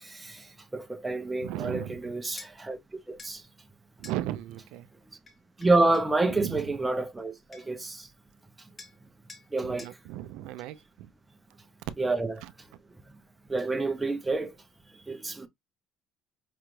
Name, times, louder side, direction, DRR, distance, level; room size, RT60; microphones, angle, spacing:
voice 1, 0.0-0.5 0.7-2.8 3.1-3.4 5.6-8.1 9.5-9.9 12.0-12.4 13.5-14.5 15.1-15.5, right 2 dB, 10° right, 0.5 m, -28 dB
voice 2, 1.4-2.0 4.0-4.9 6.3-6.8 9.6-11.1 12.4-12.5, right 14 dB, 80° right, 0.3 m, -36 dB
sound 1, 2.4-2.5 3.2-3.4 4.0-4.2 5.3-6.1 7.2-7.3 7.5-7.9 8.8-9.0 9.3-9.5 9.8-10.0, left 3 dB, 20° left, 0.8 m, -48 dB
5.0 x 2.2 x 3.0 m
cardioid pair, 175°, 0 cm